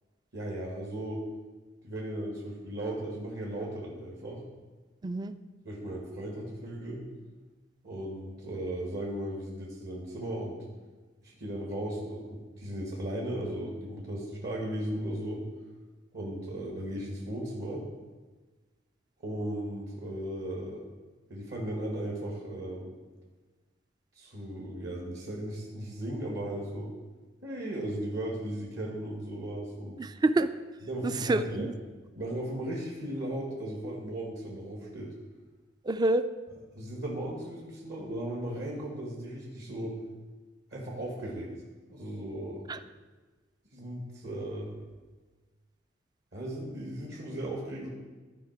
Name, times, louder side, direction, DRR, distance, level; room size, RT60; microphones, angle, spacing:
voice 1, 0.3-1.2 1.8-4.4 5.6-7.1 7.8-10.5 11.2-15.4 16.1-17.8 19.2-20.8 21.3-22.9 24.1-26.9 27.4-30.0 30.9-31.7 32.1-35.1 36.7-39.9 40.7-41.5 41.9-42.7 43.7-44.7 46.3-47.9, right 1 dB, 60° right, -2 dB, 1.6 m, -36 dB
voice 2, 5.0-5.3 30.0-30.5 31.0-31.7 35.8-36.3 42.7-42.8, right 2 dB, 20° right, 11 dB, 0.3 m, -27 dB
13.0 x 4.9 x 4.6 m, 1.3 s
head